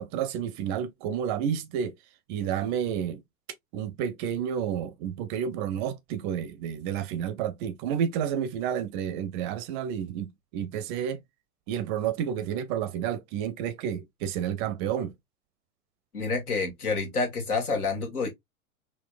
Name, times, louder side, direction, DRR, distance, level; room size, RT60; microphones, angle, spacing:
voice 1, 0.0-1.9 2.3-3.2 3.7-11.2 11.7-15.1, right 9 dB, 35° right, 0.5 m, -30 dB
voice 2, 16.1-18.3, left 4 dB, 75° left, 1.8 m, -28 dB
4.2 x 2.8 x 2.4 m
figure-of-eight pair, 90°, 44 cm